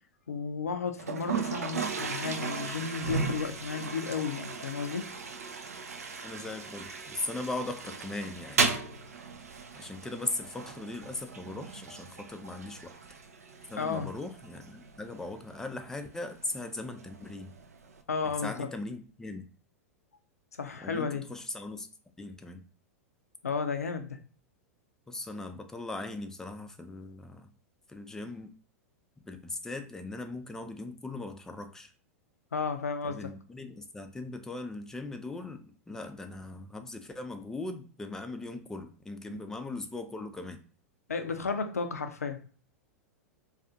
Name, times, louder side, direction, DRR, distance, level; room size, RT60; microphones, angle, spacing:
voice 1, 0.3-5.1 13.8-14.1 18.1-18.7 20.6-21.2 23.4-24.2 32.5-33.3 39.3-39.4 41.1-42.5, left 5 dB, 80° left, 0.4 m, -33 dB
Toilet flush, 1.0-18.0, right 5 dB, 80° right, 0.4 m, -37 dB
voice 2, 6.2-8.8 9.8-12.9 13.7-17.5 18.4-19.5 20.8-21.9 22.2-22.6 25.1-27.5 27.9-28.5 29.3-31.9 33.0-40.6, left 2 dB, 5° left, 0.3 m, -39 dB
2.4 x 2.3 x 2.6 m
figure-of-eight pair, 95°, 8 cm